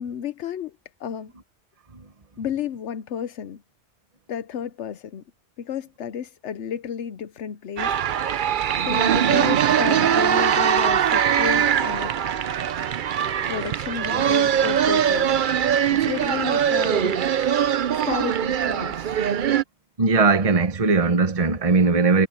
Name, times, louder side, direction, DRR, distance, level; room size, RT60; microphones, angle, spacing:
voice 1, 0.0-1.3 2.4-3.6 4.3-5.2 5.6-8.4 8.8-12.1 13.5-15.6 15.9-17.4 18.0-19.2, left 8 dB, 90° left, 1.1 m, -32 dB
sound 1, 7.8-19.6, right 9 dB, 55° right, 0.7 m, -21 dB
voice 2, 20.0-22.3, right 4 dB, 35° right, 1.2 m, -19 dB
omnidirectional pair, 1.1 m